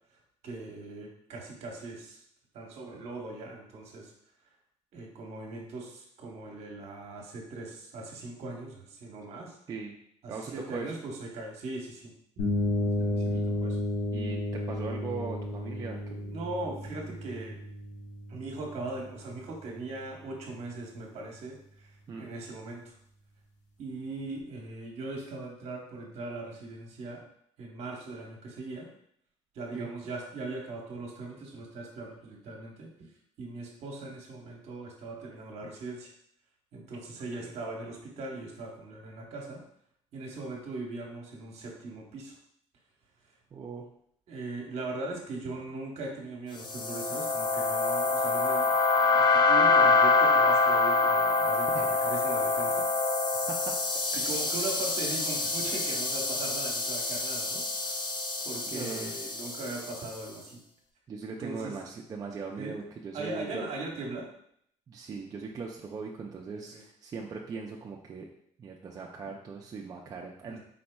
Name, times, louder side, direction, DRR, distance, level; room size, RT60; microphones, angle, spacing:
voice 1, 0.4-2.2 2.5-4.1 4.9-9.6 10.2-12.1 13.0-13.8 16.2-17.6 18.3-22.9 23.8-27.2 27.6-28.9 29.5-33.1 33.4-36.1 36.7-39.6 40.1-42.3 44.3-52.9 54.1-58.1 58.4-60.6 61.4-61.8 62.6-62.8 63.1-64.3 66.5-66.8 70.4-70.6, right 2 dB, 60° right, 1 dB, 1.0 m, -40 dB
voice 2, 10.3-10.9 13.3-13.6 14.1-16.0 22.1-22.2 29.7-29.9 37.4-37.5 43.5-43.8 51.7-51.9 53.3-53.5 54.1-54.3 58.7-59.1 61.1-63.6 64.9-68.3 68.6-70.6, right 5 dB, 30° right, -1 dB, 0.4 m, -40 dB
sound 1, 12.4-20.1, left 1 dB, 75° left, 1.2 m, -33 dB
sound 2, 46.6-60.0, left 3 dB, 40° left, 0.5 m, -26 dB
4.1 x 4.1 x 2.2 m, 0.68 s
cardioid pair, 155°, 12 cm